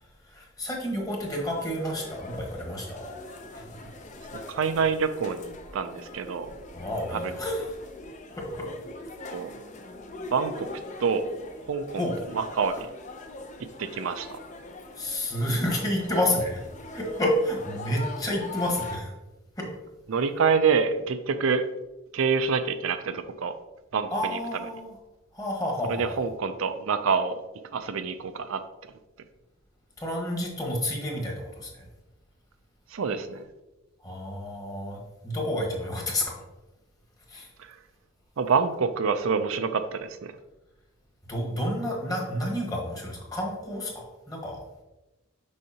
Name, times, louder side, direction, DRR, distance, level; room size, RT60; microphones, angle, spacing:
voice 1, 0.3-3.1 3.5-3.7 4.5-4.6 6.7-7.8 8.4-8.7 12.0-12.1 15.0-16.6 16.9-19.1 19.6-19.7 24.1-24.9 25.3-26.2 30.0-31.9 34.0-36.4 37.3-37.5 41.3-44.8, left 1 dB, 20° left, -1 dB, 1.3 m, -30 dB
sound 1, 1.1-19.0, left 2 dB, 35° left, 0.6 m, -42 dB
voice 2, 4.3-6.5 7.1-7.2 9.3-9.5 10.3-10.7 11.0-11.2 11.7-12.1 12.3-12.9 13.8-14.4 20.1-21.6 22.1-23.5 23.9-24.4 25.9-27.3 27.7-28.6 32.9-33.5 37.6-37.7 38.4-40.3, right 5 dB, 75° right, 10 dB, 0.4 m, -26 dB
6.3 x 5.6 x 2.8 m, 1.0 s
head